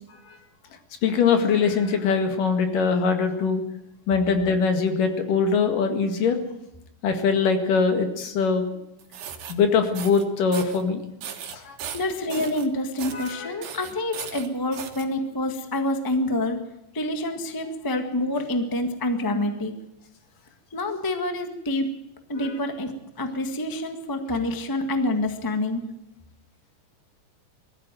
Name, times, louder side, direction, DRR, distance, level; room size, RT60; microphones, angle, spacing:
voice 1, 1.0-3.6 4.1-6.4 7.0-8.7 9.5-11.0 11.5-11.8 13.1-13.6 22.4-22.5, left 5 dB, 75° left, 6 dB, 3.5 m, -22 dB
sound 1, 9.0-9.5 10.0-10.2 10.5-10.8 11.2-12.7 13.0-13.3 13.6-15.1, right 8 dB, 90° right, 3.3 m, -37 dB
voice 2, 11.9-16.6 16.9-19.7 20.7-21.9 22.3-25.8, left 1 dB, 20° left, 6 dB, 0.6 m, -27 dB
21.0 x 14.0 x 9.2 m, 0.86 s
omnidirectional pair, 3.9 m